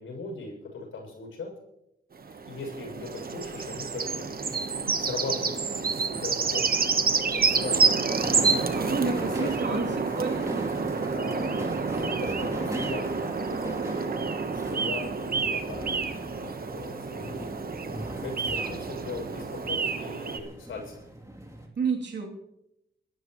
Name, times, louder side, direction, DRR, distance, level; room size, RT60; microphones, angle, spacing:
voice 1, 0.0-1.5 2.4-4.2 4.6-5.6 6.0-7.0 7.3-8.1 8.3-10.0 10.8-14.3 14.5-16.0 16.3-21.0, left 3 dB, 85° left, 1 dB, 6.7 m, -39 dB
sound 1, 2.2-20.4, right 5 dB, 50° right, 1.3 m, -29 dB
sound 2, 8.1-21.7, equal, 15° right, 3.0 m, -39 dB
voice 2, 8.7-10.7 21.8-22.3, right 5 dB, 65° right, 0 dB, 3.0 m, -30 dB
23.5 x 13.5 x 3.1 m, 0.83 s
cardioid pair, 65°, 20 cm